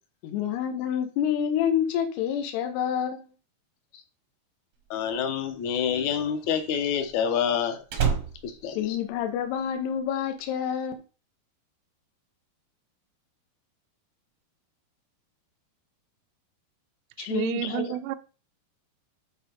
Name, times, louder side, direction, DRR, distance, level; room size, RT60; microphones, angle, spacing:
voice 1, 0.2-3.2 8.8-11.0 17.2-18.0, left 9 dB, 85° left, 3.1 m, -28 dB
voice 2, 4.9-7.8 8.4-9.0, left 8 dB, 70° left, 1.8 m, -27 dB
Slam, 4.9-9.7 10.0-10.4, right 7 dB, 70° right, 1.5 m, -32 dB
voice 3, 17.2-18.2, right 13 dB, 85° right, 2.6 m, -30 dB
9.7 x 3.5 x 5.1 m
omnidirectional pair, 4.6 m